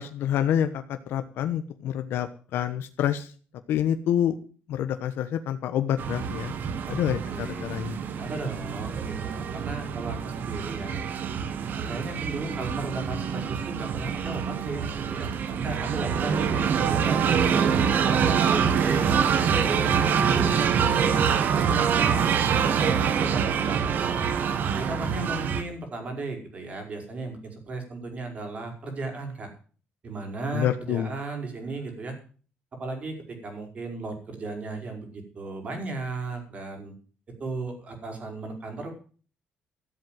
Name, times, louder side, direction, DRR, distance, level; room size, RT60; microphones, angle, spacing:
voice 1, 0.0-3.3 3.7-4.4 4.7-6.5 6.9-8.0 30.5-31.1, left 10 dB, 85° left, 8 dB, 1.1 m, -27 dB
sound 1, 6.0-25.6, right 7 dB, 55° right, 1.4 m, -25 dB
voice 2, 7.3-7.7 8.2-11.0 11.9-19.2 19.5-22.3 22.6-24.3 24.7-29.5 30.0-32.1 32.8-36.9 37.4-38.9, right 3 dB, 35° right, 4 dB, 5.0 m, -35 dB
14.0 x 7.9 x 9.2 m, 0.41 s
cardioid pair, 145°, 4 cm